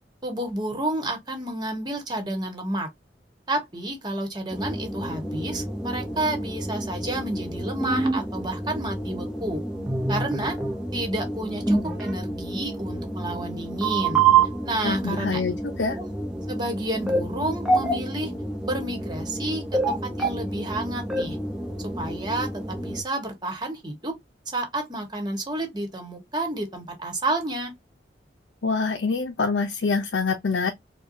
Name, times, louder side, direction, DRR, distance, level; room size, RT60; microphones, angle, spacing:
voice 1, 0.2-2.9 3.5-9.6 10.1-10.6 10.9-14.2 14.6-15.4 15.9-16.1 16.5-18.3 18.6-21.4 21.8-24.1 24.5-27.7, right 1 dB, 25° right, 1.4 m, -30 dB
sound 1, 4.5-23.0, right 3 dB, 5° right, 0.9 m, -28 dB
voice 2, 14.8-16.0 28.6-30.7, left 4 dB, 70° left, 0.6 m, -25 dB
4.5 x 2.4 x 2.6 m
head